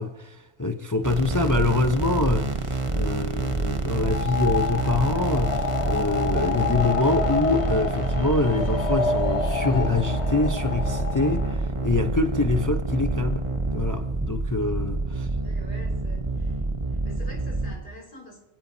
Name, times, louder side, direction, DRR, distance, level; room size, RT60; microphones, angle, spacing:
voice 1, 0.0-13.4 13.7-15.3, left 3 dB, 20° left, 0.6 m, -25 dB
sound 1, 1.0-17.8, right 3 dB, 30° right, 1.1 m, -27 dB
sound 2, 4.0-11.6, left 4 dB, 70° left, 1.3 m, -29 dB
voice 2, 15.1-16.6 17.0-18.4, equal, 55° left, 5.1 m, -46 dB
27.0 x 16.5 x 2.7 m
omnidirectional pair, 1.2 m